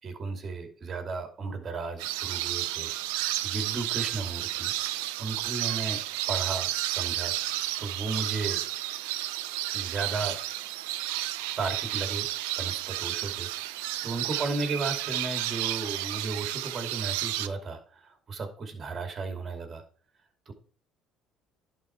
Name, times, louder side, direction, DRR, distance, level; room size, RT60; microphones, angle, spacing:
voice 1, 0.0-2.9 3.4-4.7 5.2-6.0 6.3-8.6 9.7-10.4 11.6-12.3 12.6-13.5 13.8-19.8 20.5-20.6, right 4 dB, 40° right, 5 dB, 2.6 m, -34 dB
sound 1, 2.0-17.5, right 15 dB, 85° right, 0.5 m, -32 dB
11.0 x 4.3 x 4.6 m, 0.43 s
supercardioid pair, 75°, 0 cm